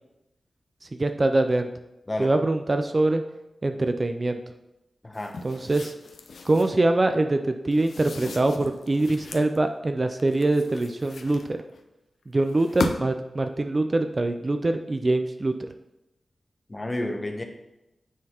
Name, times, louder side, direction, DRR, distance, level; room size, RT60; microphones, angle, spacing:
voice 1, 0.9-1.7 2.2-3.2 3.6-4.4 5.4-5.9 6.4-11.6 12.3-15.5, right 2 dB, 30° right, 7 dB, 0.3 m, -24 dB
voice 2, 5.0-5.4 16.7-17.4, left 1 dB, 20° left, 4 dB, 0.7 m, -30 dB
sound 1, 5.1-6.8 7.7-9.6 10.2-11.8 12.5-13.3, left 3 dB, 85° left, 0.5 m, -36 dB
9.1 x 3.8 x 2.8 m, 0.91 s
wide cardioid pair, 135°, 0 cm